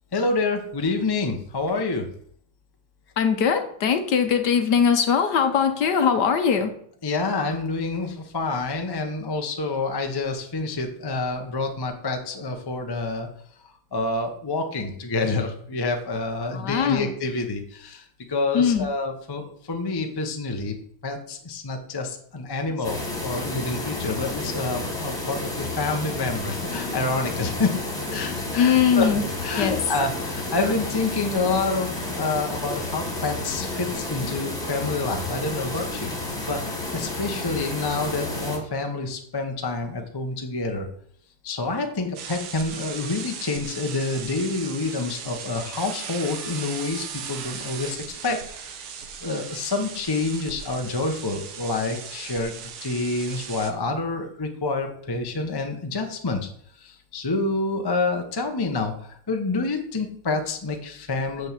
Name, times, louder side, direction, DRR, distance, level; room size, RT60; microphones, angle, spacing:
voice 1, 0.1-2.0 7.0-13.3 13.9-20.7 21.0-27.8 28.1-29.1 29.4-36.6 36.9-40.9 41.4-48.4 49.2-52.5 52.8-56.5 56.8-61.5, left 3 dB, 35° left, 4 dB, 0.4 m, -28 dB
voice 2, 3.2-6.7 16.5-17.1 18.5-18.9 28.6-29.2 29.6-29.8, left 7 dB, 60° left, 7 dB, 1.2 m, -21 dB
sound 1, 22.8-38.6, left 2 dB, 10° left, 1.8 m, -31 dB
sound 2, 42.2-53.7, right 7 dB, 85° right, 2.1 m, -37 dB
6.5 x 6.4 x 7.4 m, 0.64 s
omnidirectional pair, 2.4 m